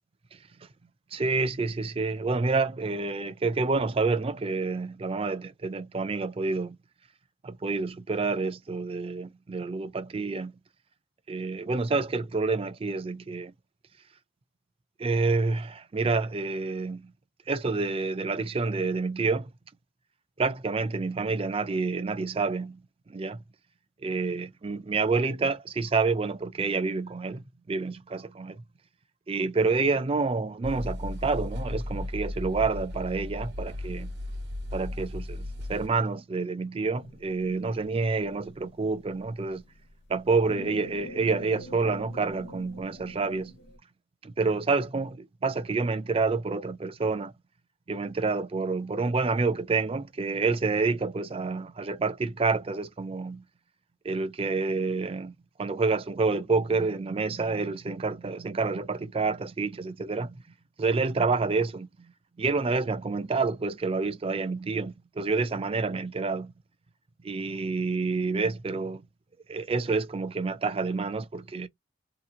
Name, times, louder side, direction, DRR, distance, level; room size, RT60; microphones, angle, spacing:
voice 1, 1.1-6.8 7.4-10.5 11.3-13.5 15.0-17.1 17.5-19.5 20.4-22.8 23.1-23.4 24.0-28.6 29.3-34.1 34.7-39.6 40.1-43.5 44.2-47.3 47.9-53.4 54.0-55.3 55.6-60.3 60.8-61.9 62.4-66.5 67.2-69.0 69.5-71.7, right 4 dB, 30° right, 0.4 m, -28 dB
sound 1, 30.6-35.9, left 1 dB, 65° right, 1.1 m, -35 dB
sound 2, 36.9-43.8, left 1 dB, 70° left, 0.9 m, -47 dB
2.9 x 2.4 x 3.7 m
head